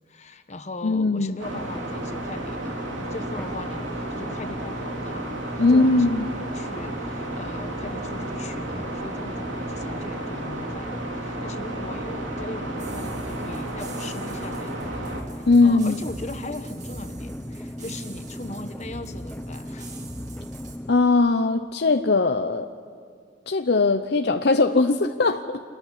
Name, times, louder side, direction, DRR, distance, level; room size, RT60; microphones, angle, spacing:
voice 1, 0.1-6.1 6.4-15.1 15.3-19.9, left 2 dB, 35° left, 8 dB, 1.1 m, -39 dB
voice 2, 0.8-1.3 5.6-6.3 15.5-16.0 20.9-22.7 23.5-25.6, left 3 dB, 60° left, 7 dB, 0.7 m, -20 dB
sound 1, 1.4-15.2, right 2 dB, 85° right, 2.9 m, -33 dB
sound 2, 1.5-20.9, equal, 10° left, 0.7 m, -37 dB
sound 3, 12.8-20.8, right 1 dB, 40° right, 2.6 m, -42 dB
28.0 x 14.0 x 10.0 m, 2.2 s
head